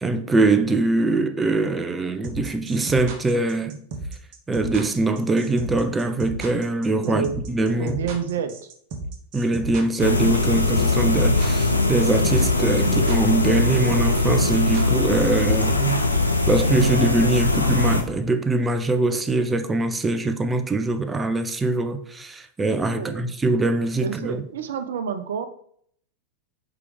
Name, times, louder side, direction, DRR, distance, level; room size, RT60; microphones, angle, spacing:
voice 1, 0.0-3.8 4.5-8.0 9.3-16.0 16.5-24.4, right 2 dB, 15° right, 0.6 m, -23 dB
sound 1, 2.2-15.4, right 3 dB, 45° right, 1.2 m, -34 dB
voice 2, 7.0-7.4 7.7-8.5 22.9-23.3 24.0-25.5, right 7 dB, 60° right, 0.7 m, -29 dB
sound 2, 10.0-18.0, left 2 dB, 85° left, 0.8 m, -21 dB
4.9 x 4.9 x 4.9 m
figure-of-eight pair, 90°, 0 cm